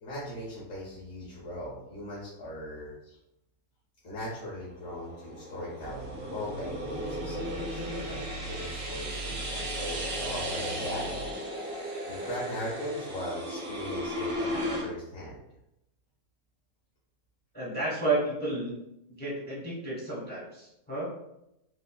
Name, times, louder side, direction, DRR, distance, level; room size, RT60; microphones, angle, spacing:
voice 1, 0.0-3.2 4.0-11.3 12.1-15.4, equal, 75° left, -5 dB, 1.4 m, -39 dB
sound 1, 4.8-14.9, equal, 60° right, 0.6 m, -36 dB
sound 2, 5.8-11.6, right 3 dB, 80° right, 1.2 m, -42 dB
voice 2, 17.5-18.8 19.2-21.1, right 2 dB, 10° left, -7 dB, 0.5 m, -31 dB
3.6 x 2.0 x 2.2 m, 0.85 s
omnidirectional pair, 1.9 m